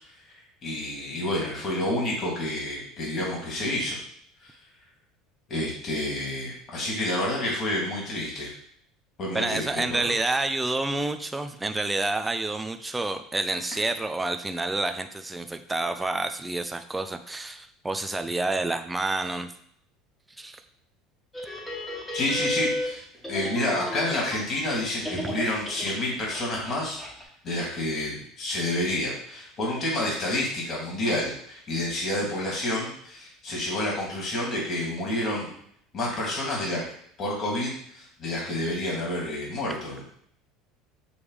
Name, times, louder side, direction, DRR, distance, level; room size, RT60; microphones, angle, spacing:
voice 1, 0.6-4.0 4.4-4.5 5.5-8.5 9.2-9.6 9.9-10.1 22.1-27.0 27.4-35.5 35.9-36.8 37.2-40.0, left 1 dB, 35° left, -3 dB, 2.9 m, -29 dB
voice 2, 9.3-19.5 20.4-20.6 25.3-25.4, right 2 dB, 10° right, 7 dB, 0.4 m, -29 dB
sound 1, 21.3-24.8 25.0-27.2, left 1 dB, 10° left, 1.6 m, -33 dB
7.1 x 3.2 x 5.0 m, 0.64 s
cardioid pair, 135°, 0 cm